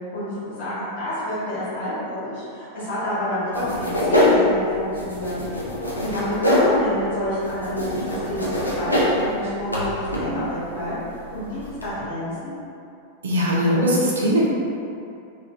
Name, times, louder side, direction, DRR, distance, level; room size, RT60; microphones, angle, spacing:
voice 1, 0.1-5.3 6.0-12.6, equal, 50° left, -10 dB, 1.4 m, -28 dB
sound 1, 3.5-11.9, left 1 dB, 85° left, 0.6 m, -24 dB
voice 2, 13.2-14.5, equal, 70° right, -5 dB, 0.7 m, -20 dB
3.2 x 2.6 x 3.0 m, 2.6 s
figure-of-eight pair, 90°, 0 cm